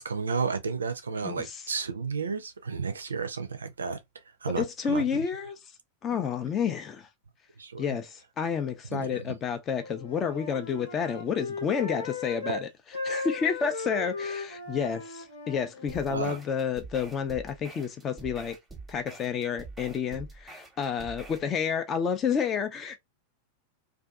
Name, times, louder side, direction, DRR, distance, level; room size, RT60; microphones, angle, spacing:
voice 1, 0.0-4.0 4.4-5.2 7.6-7.8 8.9-9.4 16.1-16.4, right 5 dB, 75° right, 0.4 m, -32 dB
voice 2, 1.2-1.6 4.4-5.6 6.0-7.1 7.8-12.7 13.0-18.6 18.9-23.0, left 7 dB, 25° left, 0.4 m, -30 dB
Wind instrument woodwind instrument, 9.8-12.7 12.9-16.2, left 3 dB, 60° left, 1.0 m, -37 dB
sound 1, 15.9-21.5, right 3 dB, 5° right, 0.8 m, -46 dB
2.5 x 2.3 x 2.3 m
figure-of-eight pair, 90°, 0 cm